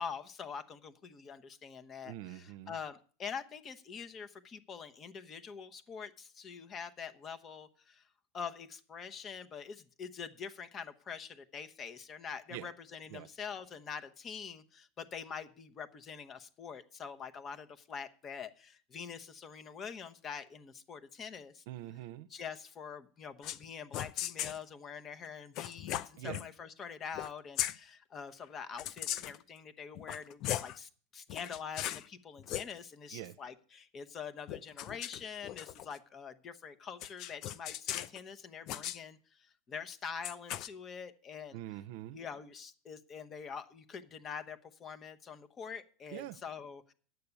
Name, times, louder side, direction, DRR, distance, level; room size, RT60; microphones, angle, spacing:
voice 1, 0.0-8.1 8.3-21.6 22.3-41.6 42.1-46.9, left 6 dB, 30° left, 10 dB, 1.1 m, -45 dB
voice 2, 2.0-2.8 12.5-12.7 13.1-13.3 21.7-22.3 26.2-26.4 33.1-33.3 41.5-42.2 46.1-46.4, right 14 dB, 65° right, 13 dB, 0.6 m, -44 dB
sound 1, 23.4-23.6 23.9-24.6 25.6-26.5 27.1-27.3 27.6-27.8 28.8-29.4 30.0-30.8 31.3-32.1 32.4-32.7 34.5-36.0 37.0-38.2 38.7-39.0 40.2-40.7, left 12 dB, 50° left, 0.6 m, -38 dB
9.4 x 6.8 x 8.5 m, 0.43 s
hypercardioid pair, 110°, 0 cm